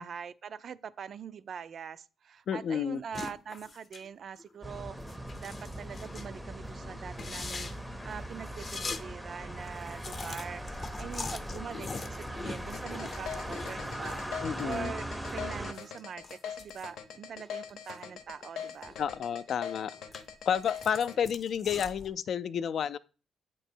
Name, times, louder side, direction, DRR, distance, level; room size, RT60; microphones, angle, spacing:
voice 1, 0.0-7.7 8.0-14.2 14.6-18.9, right 7 dB, 55° right, 0.3 m, -43 dB
voice 2, 2.5-3.0 14.4-14.9 19.0-19.9 20.5-23.0, left 8 dB, 60° left, 0.4 m, -30 dB
sound 1, 3.1-4.1 4.4-4.5 5.0-6.3 6.7-6.8 7.1-9.0 9.3-9.4 9.6-14.8 15.1-18.0 18.4-19.4 19.8-22.1, left 4 dB, 40° left, 0.7 m, -43 dB
sound 2, 4.6-15.7, right 1 dB, 5° right, 0.6 m, -40 dB
sound 3, 12.7-21.1, left 8 dB, 85° left, 0.8 m, -41 dB
7.9 x 3.0 x 4.4 m
cardioid pair, 90°, 0 cm